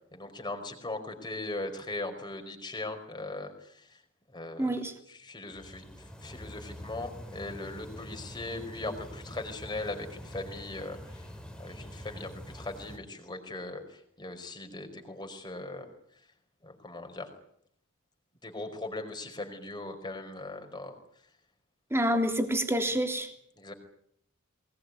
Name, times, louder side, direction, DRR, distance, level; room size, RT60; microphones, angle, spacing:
voice 1, 0.1-4.0 4.3-4.8 5.1-11.3 11.6-15.9 16.6-17.3 18.4-21.0 23.6-23.7, left 2 dB, 20° left, 5 dB, 5.0 m, -39 dB
voice 2, 4.6-4.9 21.9-23.3, right 1 dB, 10° right, 5 dB, 3.4 m, -27 dB
sound 1, 5.5-13.0, equal, 5° left, 3.6 m, -45 dB
23.0 x 20.5 x 9.6 m, 0.68 s
head